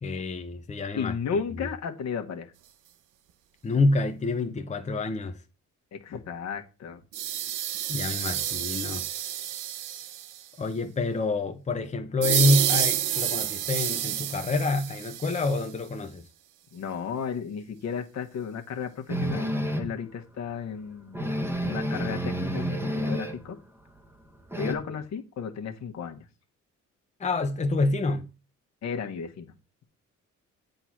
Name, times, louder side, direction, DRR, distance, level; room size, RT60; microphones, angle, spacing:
voice 1, 0.0-1.1 3.6-5.4 7.9-9.0 10.6-16.2 27.2-28.3, left 3 dB, 25° left, 0.8 m, -27 dB
voice 2, 0.9-2.5 5.9-7.0 16.7-21.2 21.6-23.6 24.6-26.3 28.8-29.5, left 6 dB, 60° left, 1.4 m, -34 dB
sound 1, 7.1-10.5 12.2-15.7, right 11 dB, 85° right, 0.8 m, -29 dB
sound 2, 19.1-20.0 20.5-20.6 20.8-20.9 21.1-23.5 23.8-24.7, equal, 10° right, 1.2 m, -30 dB
8.0 x 3.9 x 6.0 m
cardioid pair, 90°, 30 cm